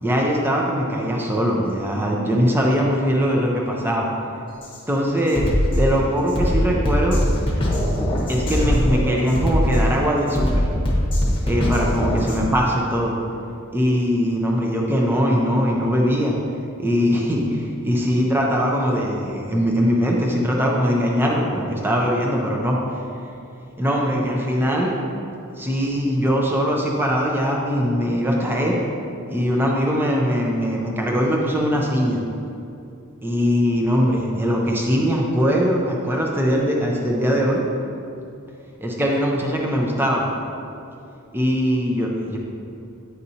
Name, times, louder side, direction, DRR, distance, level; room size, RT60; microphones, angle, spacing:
voice 1, 0.0-4.1 4.9-7.2 8.3-10.7 11.4-13.2 13.7-16.3 16.8-22.8 23.8-24.9 25.6-28.8 29.3-32.2 33.2-37.6 38.8-40.3 41.3-42.4, equal, 10° right, -2 dB, 0.5 m, -21 dB
Drum kit, 4.6-4.8 5.3-12.5, equal, 25° left, 1.0 m, -21 dB
9.4 x 4.1 x 2.8 m, 2.6 s
head